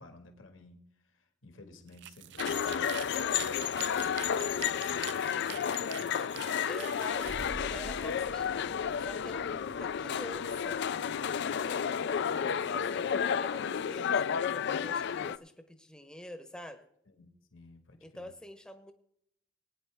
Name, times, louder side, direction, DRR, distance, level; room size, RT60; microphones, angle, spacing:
voice 1, 0.0-6.5 17.1-18.3, left 2 dB, 75° left, 4 dB, 1.8 m, -54 dB
sound 1, 1.9-7.5, right 13 dB, 60° right, 0.4 m, -45 dB
sound 2, 2.4-15.4, left 7 dB, 60° left, 0.4 m, -32 dB
voice 2, 6.7-8.7 9.0-16.9 18.0-18.9, left 1 dB, 5° left, 8 dB, 0.9 m, -47 dB
sound 3, 7.1-11.5, right 1 dB, 35° right, 1.1 m, -48 dB
20.0 x 9.5 x 3.4 m, 0.72 s
head